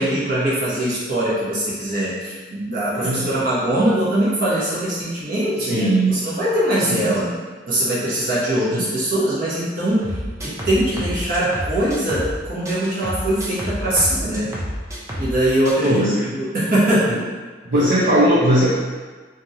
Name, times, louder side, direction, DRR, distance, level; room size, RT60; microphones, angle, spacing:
voice 1, 0.0-7.3 7.7-10.1 10.4-14.5 15.2-16.0 16.3-17.1, right 1 dB, 50° right, -9 dB, 1.0 m, -21 dB
voice 2, 3.0-3.4 5.6-6.2 6.9-7.3 8.7-8.9 15.8-16.3 17.1-17.2 17.7-18.8, right 1 dB, 70° right, -10 dB, 0.6 m, -19 dB
sound 1, 10.0-12.4 12.6-15.4 15.6-15.9, equal, 15° right, 0.5 m, -29 dB
3.0 x 2.6 x 2.6 m, 1.4 s
head